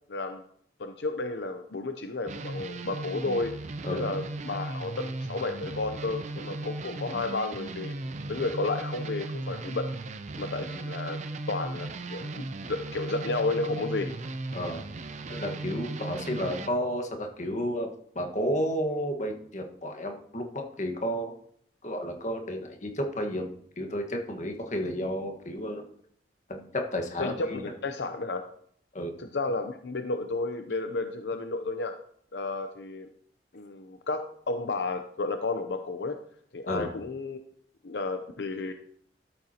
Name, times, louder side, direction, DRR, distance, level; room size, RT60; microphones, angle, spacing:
voice 1, 0.1-0.4 0.8-3.5 3.9-7.9 8.3-9.9 10.4-11.2 11.5-14.2 27.2-28.4 29.2-31.9 32.3-33.1 33.5-36.2 36.5-37.4 37.8-38.7, left 3 dB, 75° left, 6 dB, 0.7 m, -32 dB
sound 1, 2.3-16.7, right 2 dB, 40° right, 0.6 m, -37 dB
voice 2, 14.5-15.0 15.3-17.9 18.1-21.3 21.8-23.5 23.8-25.8 26.5-27.6 28.9-29.1 36.7-36.9, equal, 45° left, 4 dB, 1.5 m, -32 dB
13.0 x 7.7 x 2.9 m, 0.63 s
head